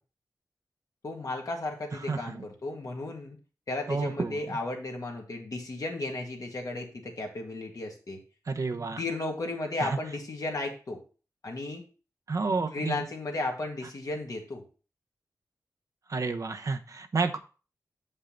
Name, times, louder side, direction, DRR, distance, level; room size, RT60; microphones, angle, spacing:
voice 1, 1.0-3.4 3.7-8.2 9.0-11.0 11.4-11.8 12.7-14.6, left 2 dB, 65° left, 1 dB, 1.9 m, -34 dB
voice 2, 2.1-2.5 3.9-4.6 8.5-9.0 9.8-10.0 12.3-13.0 16.1-17.4, right 4 dB, 55° right, 6 dB, 0.8 m, -30 dB
7.3 x 5.5 x 3.8 m, 0.36 s
wide cardioid pair, 95°, 7 cm